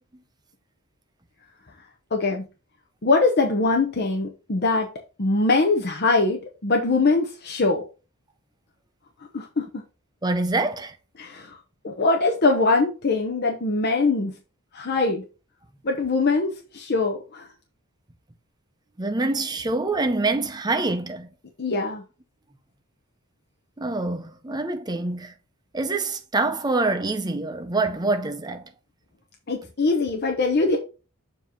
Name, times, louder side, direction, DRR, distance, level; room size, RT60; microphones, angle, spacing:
voice 1, 2.1-2.4 3.0-4.9 5.2-7.8 9.3-9.8 11.2-11.6 11.8-14.3 14.7-15.2 15.8-17.5 21.6-22.0 29.5-30.8, left 3 dB, 50° left, 0.8 m, -22 dB
voice 2, 10.2-10.9 19.0-21.3 23.8-25.3 25.7-28.7, right 3 dB, 20° right, 0.7 m, -25 dB
7.1 x 3.0 x 5.4 m
head